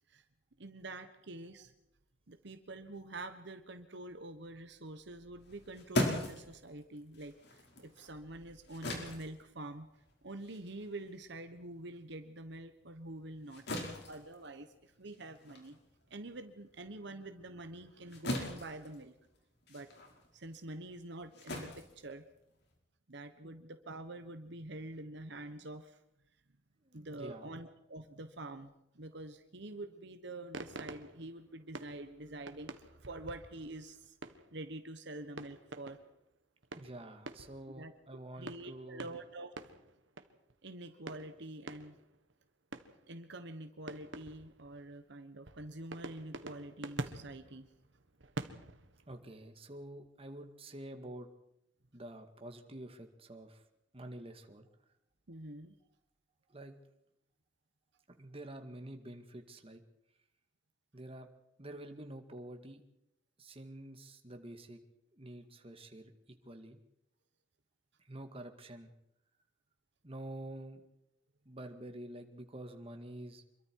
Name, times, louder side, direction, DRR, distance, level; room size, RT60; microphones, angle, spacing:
voice 1, 0.6-1.7 2.3-9.9 10.2-13.6 14.1-15.8 16.1-19.1 19.7-19.9 20.3-22.2 23.1-26.0 26.9-34.2 34.5-36.0 37.7-37.9 38.4-39.5 40.6-42.0 43.1-47.7 55.3-55.7, right 2 dB, 65° right, 8 dB, 1.3 m, -46 dB
sound 1, 5.4-12.2 12.6-22.8, left 1 dB, 60° left, 5.2 m, -41 dB
voice 2, 26.8-27.5 36.8-39.1 49.1-51.3 51.9-53.6 53.9-54.7 56.5-56.8 58.1-59.8 60.9-61.3 61.6-62.8 63.4-64.8 65.1-66.8 68.0-68.9 70.0-70.9 71.5-73.4, right 1 dB, 30° right, 6 dB, 2.2 m, -48 dB
sound 2, 30.5-34.7 35.2-36.2 36.6-37.8 38.5-40.5 41.1-42.3 42.7-43.2 43.9-44.9 45.5-49.1, right 2 dB, 85° right, 1.6 m, -47 dB
26.5 x 23.0 x 4.8 m, 0.82 s
head